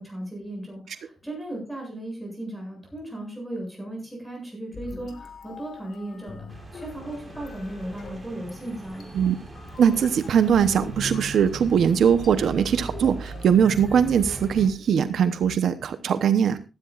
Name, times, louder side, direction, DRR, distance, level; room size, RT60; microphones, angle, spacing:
voice 1, 0.0-9.0, right 1 dB, ahead, -1 dB, 7.7 m, -36 dB
sound 1, 4.7-15.0, left 4 dB, 60° left, 1.8 m, -44 dB
sound 2, 6.5-14.7, right 2 dB, 20° right, 3.4 m, -39 dB
voice 2, 9.8-16.6, right 7 dB, 75° right, 11 dB, 0.9 m, -21 dB
16.0 x 13.5 x 2.5 m, 0.30 s
wide cardioid pair, 180°, 0 cm